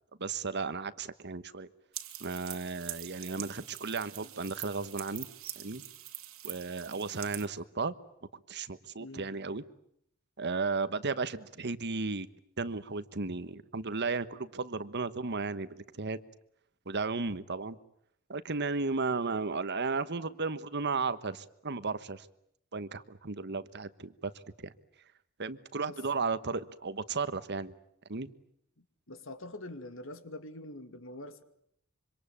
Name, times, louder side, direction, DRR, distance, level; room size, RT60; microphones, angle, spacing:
voice 1, 0.2-1.7 2.2-5.3 5.6-5.8 6.4-7.9 8.5-9.6 10.4-12.3 12.6-15.7 15.9-16.2 16.9-17.8 18.3-22.3 22.7-24.3 24.6-24.7 25.4-27.7 28.1-28.3, right 4 dB, 55° right, 14 dB, 1.3 m, -34 dB
sound 1, 1.9-7.5, right 14 dB, 80° right, 2.6 m, -44 dB
voice 2, 9.0-9.4 25.9-26.0 28.8-31.4, left 1 dB, 65° left, 10 dB, 2.4 m, -45 dB
26.0 x 25.5 x 8.7 m, 0.70 s
head